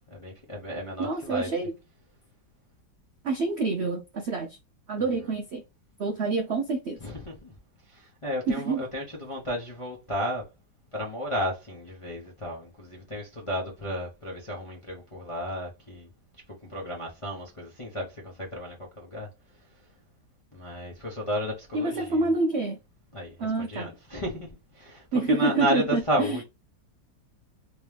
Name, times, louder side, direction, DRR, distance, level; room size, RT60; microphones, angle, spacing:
voice 1, 0.1-1.5 7.0-7.5 7.9-10.4 10.9-16.1 16.7-19.3 20.5-22.3 23.1-24.5 24.7-26.4, equal, 35° left, 0.5 m, -33 dB
voice 2, 1.0-1.7 3.2-4.6 4.9-5.6 6.0-7.0 8.5-8.8 21.7-22.8 23.4-23.9 25.1-26.4, right 3 dB, 85° right, 0.5 m, -27 dB
3.3 x 3.1 x 3.2 m
omnidirectional pair, 2.0 m